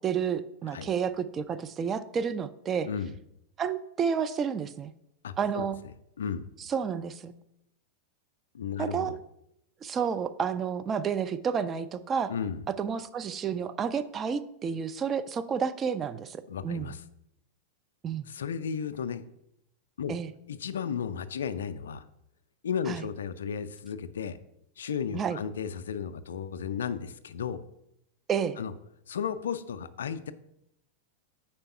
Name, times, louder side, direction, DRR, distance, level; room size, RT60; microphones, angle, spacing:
voice 1, 0.0-2.9 3.6-4.9 5.4-5.8 6.7-7.3 8.8-9.2 9.8-12.3 12.8-16.9 18.0-18.3 20.1-20.3 22.9-23.0 25.1-25.4 28.3-28.6, right 7 dB, 25° right, 10 dB, 0.3 m, -30 dB
voice 2, 5.2-5.6 6.2-6.5 8.5-9.1 12.3-12.6 16.5-17.0 18.3-19.2 20.0-20.2 20.5-22.0 22.6-24.4 24.8-27.6 28.6-28.7 29.1-30.3, left 7 dB, 65° left, 12 dB, 0.3 m, -34 dB
5.2 x 4.4 x 5.6 m, 0.81 s
figure-of-eight pair, 90°, 0 cm